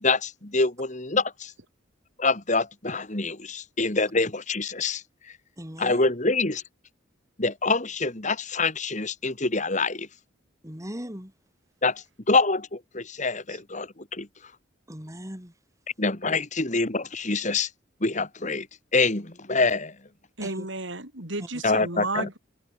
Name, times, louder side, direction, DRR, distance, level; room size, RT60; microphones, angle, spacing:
voice 1, 0.0-1.5 2.2-5.0 5.8-6.6 7.4-10.1 11.8-14.3 16.0-17.7 18.0-18.7 18.9-19.9 21.6-22.3, left 3 dB, 40° left, 2.6 m, -25 dB
voice 2, 5.6-6.0 10.6-11.3 14.9-15.5 20.4-20.7, equal, 15° right, 6.9 m, -38 dB
voice 3, 20.4-22.4, right 2 dB, 75° right, 6.4 m, -32 dB
open air
head